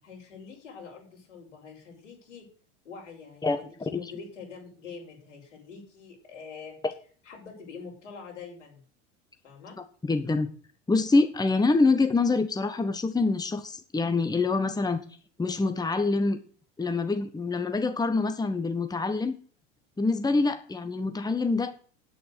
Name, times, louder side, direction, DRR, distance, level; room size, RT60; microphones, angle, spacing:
voice 1, 0.0-2.4 2.8-6.8 7.2-8.8 9.4-9.8 20.3-20.5, left 5 dB, 90° left, -1 dB, 6.8 m, -45 dB
voice 2, 3.4-4.0 10.1-10.5 10.9-15.0 15.4-16.4 16.8-19.3 20.0-21.7, left 3 dB, 10° left, 8 dB, 1.4 m, -25 dB
9.3 x 8.6 x 8.1 m, 0.43 s
hypercardioid pair, 90°, 36 cm